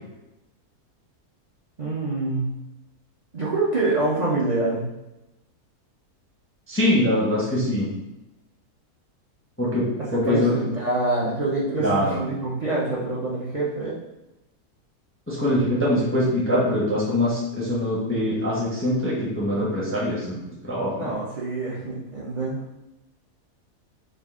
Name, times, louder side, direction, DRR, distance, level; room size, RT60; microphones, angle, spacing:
voice 1, 1.8-2.5 3.3-4.8 10.0-13.9 20.9-22.6, right 2 dB, 45° right, -7 dB, 0.5 m, -26 dB
voice 2, 6.7-7.9 9.6-10.5 11.8-12.2 15.3-20.4 20.6-21.1, left 1 dB, 15° left, -6 dB, 0.5 m, -23 dB
3.6 x 2.5 x 3.6 m, 0.94 s
omnidirectional pair, 1.6 m